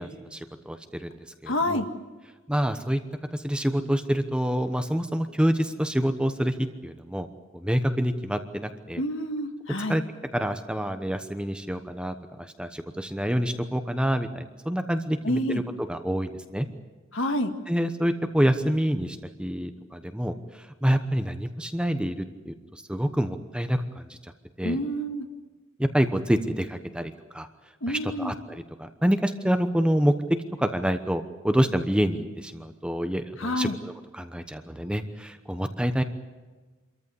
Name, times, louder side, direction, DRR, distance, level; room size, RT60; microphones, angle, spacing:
voice 1, 0.0-1.8 2.5-3.0 3.3-7.3 7.5-9.0 9.9-10.0 10.3-16.7 17.7-24.3 24.6-24.8 25.8-27.5 27.9-30.1 30.6-36.0, equal, 5° right, 8 dB, 1.0 m, -27 dB
voice 2, 1.5-1.9 9.0-10.0 15.2-15.6 17.1-17.6 24.6-25.3 27.8-28.3 33.4-33.8, left 1 dB, 70° left, 6 dB, 1.9 m, -28 dB
26.5 x 14.0 x 9.7 m, 1.3 s
head